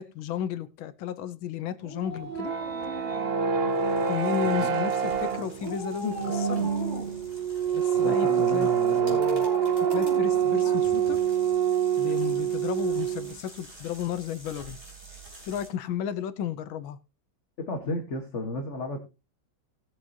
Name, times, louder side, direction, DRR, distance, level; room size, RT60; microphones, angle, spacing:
voice 1, 0.0-2.5 4.1-6.7 7.7-8.7 9.1-9.5 9.8-11.2 12.0-14.8 15.5-17.0, left 9 dB, 90° left, 12 dB, 1.6 m, -33 dB
Dog, 1.8-3.9 5.6-7.3 9.0-11.1 11.4-11.5, left 1 dB, 15° left, 8.1 m, -37 dB
sound 1, 2.1-13.4, right 8 dB, 55° right, 0.6 m, -26 dB
sound 2, 3.7-15.7, right 2 dB, 30° right, 5.3 m, -50 dB
voice 2, 7.9-9.2 17.6-19.0, left 2 dB, 40° left, 4 dB, 1.6 m, -33 dB
19.5 x 7.2 x 2.8 m, 0.27 s
omnidirectional pair, 2.1 m